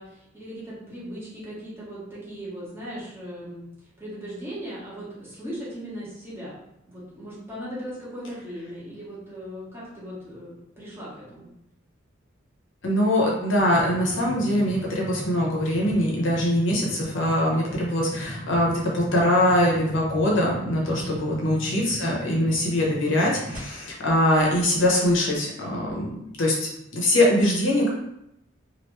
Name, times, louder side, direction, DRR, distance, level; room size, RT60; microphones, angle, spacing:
voice 1, 0.0-3.7 4.0-6.6 6.9-11.5 20.8-21.3, equal, 10° right, -9 dB, 1.3 m, -38 dB
voice 2, 12.8-27.9, left 1 dB, 65° left, -3 dB, 0.8 m, -23 dB
sound 1, 13.6-23.6, right 1 dB, 40° right, 1.0 m, -37 dB
3.1 x 2.6 x 3.1 m, 0.83 s
head